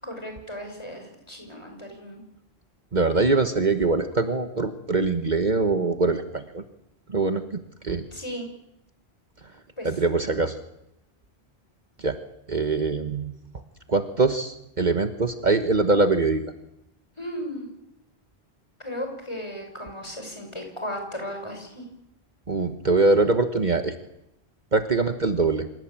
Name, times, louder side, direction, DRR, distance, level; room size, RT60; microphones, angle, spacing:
voice 1, 0.0-2.2 8.1-8.5 9.8-9.9 17.2-17.7 18.8-21.9, equal, 30° left, 4 dB, 6.3 m, -35 dB
voice 2, 2.9-6.6 7.1-8.0 9.8-10.6 12.0-12.2 12.5-13.3 13.9-16.4 22.5-23.9 24.7-25.7, right 3 dB, 45° right, 8 dB, 1.4 m, -23 dB
26.5 x 17.5 x 8.9 m, 0.84 s
omnidirectional pair, 1.1 m